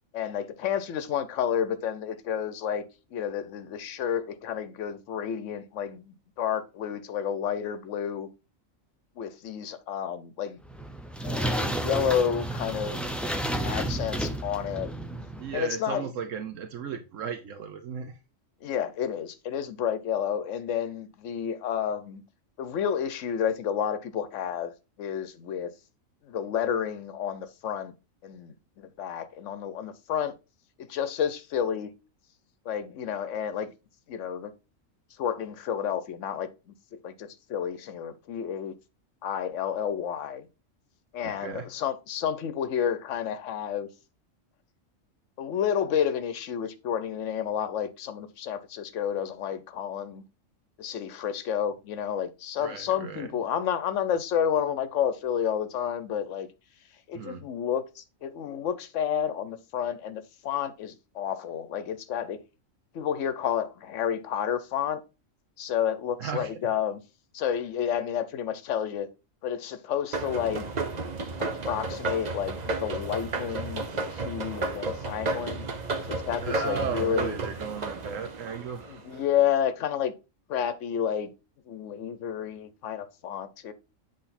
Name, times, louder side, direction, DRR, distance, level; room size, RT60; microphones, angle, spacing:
voice 1, 0.1-2.8 3.1-8.3 9.2-10.6 11.2-13.0 13.6-14.9 15.5-16.1 18.6-22.2 22.6-24.7 25.0-25.7 26.2-27.9 28.2-30.3 30.8-31.9 32.7-33.7 34.1-34.5 35.2-36.7 37.0-38.7 39.2-40.5 41.1-43.9 45.4-50.2 50.8-56.5 57.1-62.4 62.9-65.0 65.6-67.0 67.3-69.1 69.4-70.7 71.4-73.8 74.1-75.7 76.1-77.4 78.9-80.1 80.5-81.3 81.7-83.7, left 8 dB, 70° left, 1.1 m, -30 dB
sound 1, 10.6-15.6, right 1 dB, ahead, 0.4 m, -31 dB
voice 2, 15.4-18.2 41.2-41.7 52.6-53.3 57.1-57.4 66.2-66.5 76.4-79.0, right 7 dB, 75° right, 1.1 m, -35 dB
sound 2, 70.1-79.2, right 3 dB, 40° right, 0.8 m, -32 dB
7.8 x 3.5 x 4.1 m
omnidirectional pair, 1.3 m